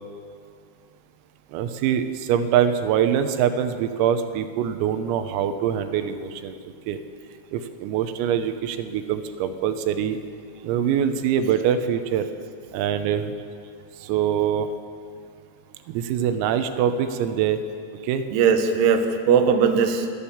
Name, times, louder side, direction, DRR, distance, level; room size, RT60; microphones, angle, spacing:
voice 1, 1.5-7.0 7.5-10.2 10.6-12.3 12.7-13.3 14.0-14.7 15.9-17.6 18.0-18.2, right 9 dB, 85° right, 8 dB, 3.7 m, -24 dB
voice 2, 18.3-20.1, right 6 dB, 65° right, 5 dB, 2.9 m, -19 dB
27.5 x 14.0 x 7.2 m, 2.3 s
omnidirectional pair, 6.0 m